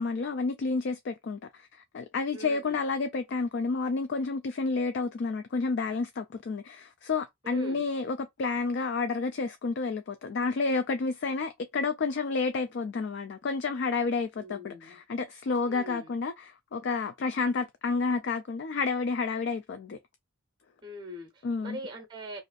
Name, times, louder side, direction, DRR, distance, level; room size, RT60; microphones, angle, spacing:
voice 1, 0.0-20.0 21.4-21.8, left 4 dB, 55° left, 0.3 m, -30 dB
voice 2, 2.3-2.8 7.4-7.8 14.4-15.0 15.7-16.1 20.8-22.4, equal, 20° right, 0.7 m, -42 dB
2.5 x 2.5 x 3.8 m
head